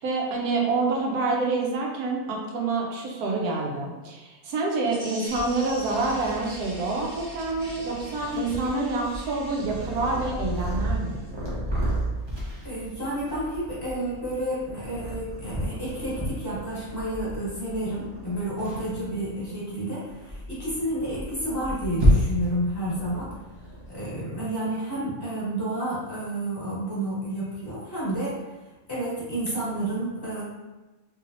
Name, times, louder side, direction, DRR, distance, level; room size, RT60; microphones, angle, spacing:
voice 1, 0.0-11.2, right 3 dB, 85° right, -1 dB, 1.2 m, -27 dB
sound 1, 4.9-11.3, right 1 dB, 60° right, 1.6 m, -44 dB
Purr, 5.3-24.0, equal, 25° right, 0.6 m, -31 dB
voice 2, 12.6-23.3 23.9-28.4 28.9-30.4, right 1 dB, 15° left, -9 dB, 1.2 m, -30 dB
3.2 x 3.0 x 2.4 m, 1.1 s
omnidirectional pair, 1.6 m